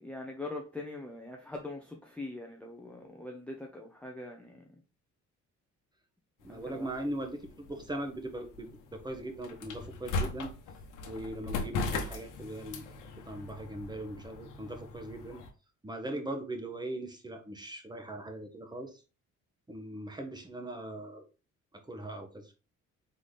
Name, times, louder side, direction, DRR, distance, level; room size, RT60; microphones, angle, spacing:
voice 1, 0.0-4.6 6.5-6.9, left 2 dB, 5° left, 0 dB, 0.7 m, -42 dB
sound 1, 6.4-15.5, left 3 dB, 80° left, 0.9 m, -39 dB
voice 2, 6.4-10.5 11.1-13.0 13.3-15.4 15.8-18.9 19.7-21.2 21.9-22.5, right 1 dB, 15° right, 4 dB, 1.0 m, -40 dB
4.1 x 3.7 x 3.2 m, 0.33 s
cardioid pair, 105°, 31 cm